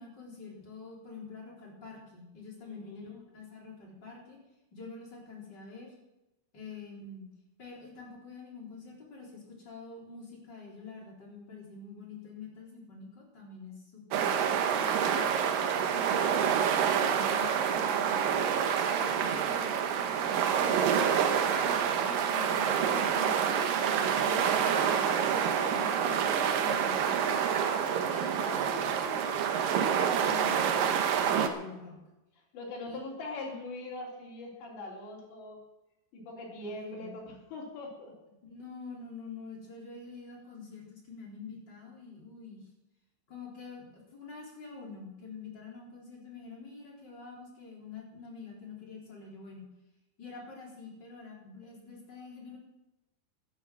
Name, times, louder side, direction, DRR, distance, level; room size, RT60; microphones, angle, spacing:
voice 1, 0.0-4.4 4.7-5.9 6.5-7.3 7.6-14.4 14.7-15.4 15.7-18.5 18.8-20.9 21.5-27.5 28.0-32.0 32.9-33.0 36.6-37.2 38.4-42.7 43.3-49.6 50.2-52.6, left 4 dB, 25° left, -2 dB, 4.2 m, -46 dB
voice 2, 2.6-3.2 32.5-35.6 36.1-38.1, left 2 dB, 75° left, -2 dB, 5.8 m, -42 dB
sound 1, 14.1-31.5, right 8 dB, 65° right, 2.3 m, -27 dB
13.0 x 11.0 x 7.7 m, 0.96 s
omnidirectional pair, 5.1 m